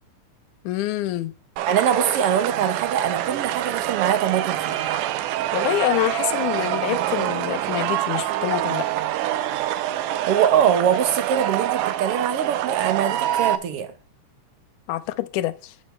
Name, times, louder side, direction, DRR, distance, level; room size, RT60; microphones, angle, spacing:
voice 1, 0.6-1.3 5.5-8.9 14.9-15.7, left 15 dB, 80° left, 2.1 m, -26 dB
sound 1, 1.6-13.6, right 13 dB, 85° right, 2.1 m, -25 dB
voice 2, 1.7-4.8 10.3-13.9, right 9 dB, 65° right, 1.6 m, -23 dB
11.0 x 8.5 x 3.3 m
omnidirectional pair, 3.7 m